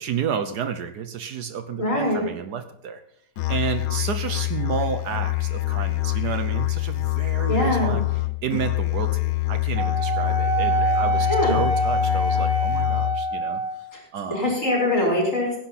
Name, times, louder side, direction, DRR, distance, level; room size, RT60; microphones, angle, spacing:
voice 1, 0.0-3.0 3.5-8.0 8.4-13.6 14.1-14.5, right 7 dB, 65° right, 10 dB, 1.3 m, -31 dB
voice 2, 1.8-2.3 7.5-8.0 11.3-11.5 13.9-14.0 14.3-15.5, left 1 dB, 45° left, -3 dB, 5.3 m, -22 dB
Musical instrument, 3.4-13.3, left 20 dB, 65° left, 1.0 m, -25 dB
Wind instrument woodwind instrument, 9.8-13.9, right 2 dB, 20° right, 3.6 m, -25 dB
17.5 x 10.5 x 4.2 m, 0.74 s
omnidirectional pair, 1.9 m